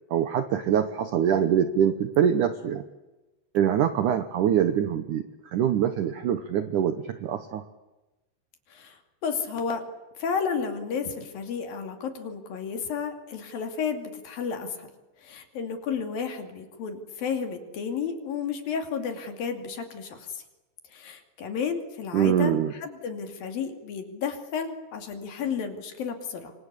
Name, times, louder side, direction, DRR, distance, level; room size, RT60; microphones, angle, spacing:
voice 1, 0.1-2.8 3.5-7.6 22.1-22.7, right 9 dB, 70° right, 9 dB, 1.9 m, -24 dB
voice 2, 8.7-9.8 10.2-14.9 15.2-20.4 20.9-22.5 22.8-26.5, left 6 dB, 60° left, 5 dB, 4.1 m, -32 dB
26.5 x 26.0 x 8.4 m, 1.1 s
omnidirectional pair, 5.0 m